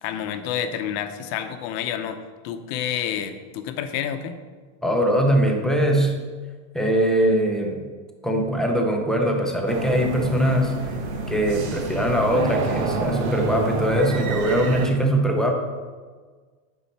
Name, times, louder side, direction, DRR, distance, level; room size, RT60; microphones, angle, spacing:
voice 1, 0.0-2.2 2.4-4.4, left 9 dB, 40° left, 8 dB, 0.7 m, -29 dB
voice 2, 4.8-6.2 6.7-7.9 8.2-10.7 11.3-15.5, right 1 dB, ahead, 1 dB, 0.4 m, -21 dB
sound 1, 9.7-14.9, right 3 dB, 85° right, 1.4 m, -28 dB
10.5 x 5.4 x 4.2 m, 1.5 s
supercardioid pair, 155°, 41 cm